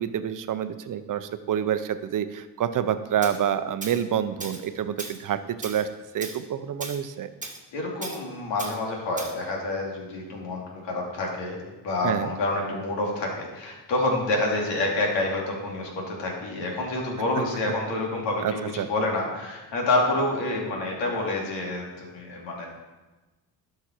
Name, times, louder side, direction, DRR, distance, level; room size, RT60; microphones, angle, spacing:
voice 1, 0.0-5.9 6.1-7.3 12.0-12.3 18.4-18.9, right 9 dB, 45° right, 11 dB, 0.8 m, -28 dB
Tools, 3.2-3.4 3.8-4.0 4.4-4.7 5.0-5.2 5.6-5.8 6.2-6.4 6.8-7.0 7.4-7.6 8.0-8.2 8.6-8.8 9.2-9.4, right 3 dB, 15° right, 1.7 m, -37 dB
voice 2, 7.7-22.7, left 2 dB, 70° left, -1 dB, 2.8 m, -28 dB
11.5 x 5.8 x 4.5 m, 1.2 s
supercardioid pair, 75°, 44 cm